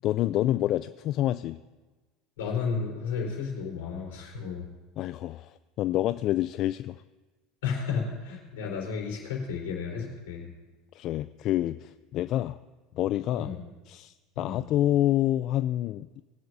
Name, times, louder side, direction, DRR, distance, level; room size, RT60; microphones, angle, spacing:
voice 1, 0.0-1.6 5.0-7.0 10.9-12.6 12.9-13.5 13.9-16.2, left 13 dB, 55° left, 14 dB, 0.3 m, -27 dB
voice 2, 2.4-4.7 7.6-10.5 13.3-13.6 14.4-14.6, left 5 dB, 80° left, -1 dB, 3.9 m, -32 dB
20.5 x 9.5 x 2.7 m, 1.2 s
hypercardioid pair, 80°, 0 cm